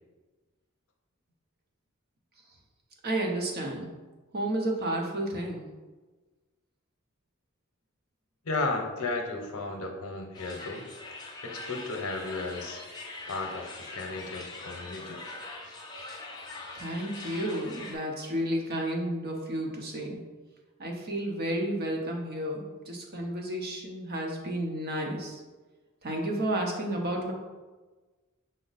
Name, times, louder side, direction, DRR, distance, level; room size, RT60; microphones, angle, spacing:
voice 1, 3.0-3.9 4.3-5.7 16.7-20.2 20.8-25.4 26.0-27.3, right 1 dB, 50° right, 1 dB, 0.7 m, -31 dB
voice 2, 8.4-10.8 11.4-12.8 13.3-15.2, left 3 dB, 80° left, 3 dB, 0.7 m, -34 dB
sound 1, 10.3-18.0, left 2 dB, 20° left, 0.6 m, -42 dB
6.1 x 2.1 x 3.9 m, 1.3 s
head